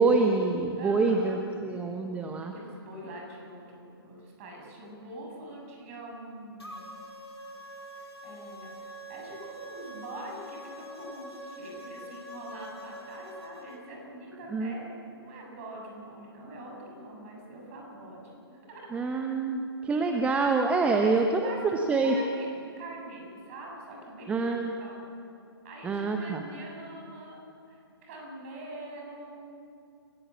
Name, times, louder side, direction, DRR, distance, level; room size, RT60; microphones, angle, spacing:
voice 1, 0.0-2.5 14.5-14.7 18.9-21.2 21.9-22.1 24.3-24.7 25.8-26.4, right 4 dB, 10° right, 4 dB, 1.0 m, -26 dB
voice 2, 0.8-1.4 2.4-6.9 8.0-19.0 21.0-25.1 25.6-29.5, right 1 dB, 30° right, 0 dB, 7.7 m, -44 dB
sound 1, 6.6-13.8, equal, 80° left, 5.5 m, -45 dB
30.0 x 15.5 x 8.8 m, 2.6 s
figure-of-eight pair, 125°, 13 cm